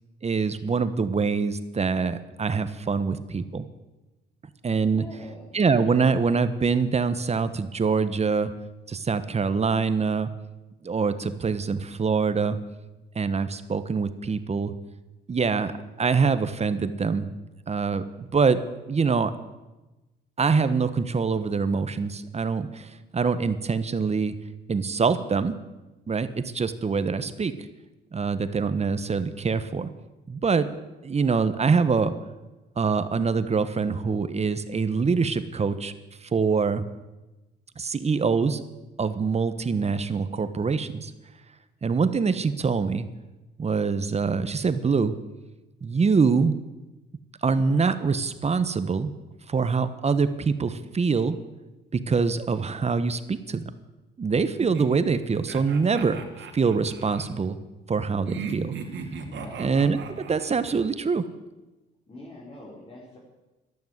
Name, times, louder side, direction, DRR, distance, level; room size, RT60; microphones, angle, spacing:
voice 1, 0.2-3.6 4.6-5.0 5.5-8.5 8.9-10.3 10.8-12.6 13.1-14.7 15.3-17.4 17.7-18.6 18.9-19.3 20.4-24.3 24.7-25.5 26.1-27.6 28.1-29.9 30.3-30.7 31.0-32.1 32.8-35.9 36.2-36.8 37.8-38.6 39.0-41.1 41.8-43.1 43.6-45.1 45.8-46.6 47.4-49.1 49.5-51.4 51.9-53.7 54.2-56.2 56.5-57.6 57.9-58.7 59.6-60.0 60.3-61.3, right 5 dB, 35° right, 12 dB, 1.2 m, -24 dB
voice 2, 4.9-5.6 59.3-59.7 62.1-63.2, left 1 dB, 30° left, -4 dB, 4.5 m, -43 dB
sound 1, 54.6-57.3 58.2-60.8, right 6 dB, 70° right, 2.2 m, -38 dB
13.0 x 12.0 x 8.0 m, 1.1 s
cardioid pair, 90°, 20 cm